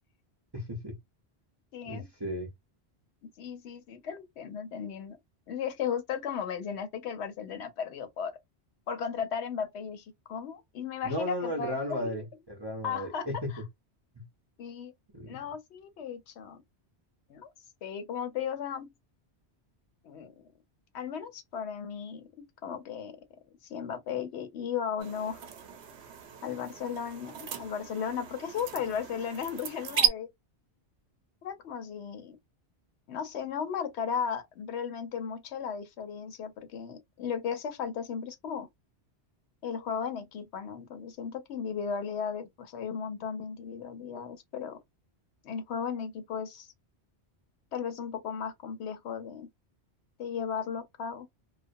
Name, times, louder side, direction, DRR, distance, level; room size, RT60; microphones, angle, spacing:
voice 1, 0.5-0.9 1.8-2.5 11.0-13.5 14.1-14.2 15.1-15.4, left 1 dB, 30° right, 0.6 m, -35 dB
voice 2, 1.7-2.1 3.2-5.2 5.5-8.4 8.9-12.1 12.8-13.3 14.6-14.9 15.3-16.6 17.3-17.5 17.8-18.9 20.0-20.3 20.9-23.2 23.6-25.4 26.4-30.3 31.4-32.4 33.1-38.7 39.6-44.8 45.4-46.7 47.7-49.5 50.2-51.3, left 7 dB, 80° left, 0.9 m, -35 dB
sound 1, 25.0-30.1, right 10 dB, 85° right, 0.9 m, -34 dB
2.3 x 2.1 x 2.5 m
omnidirectional pair, 1.1 m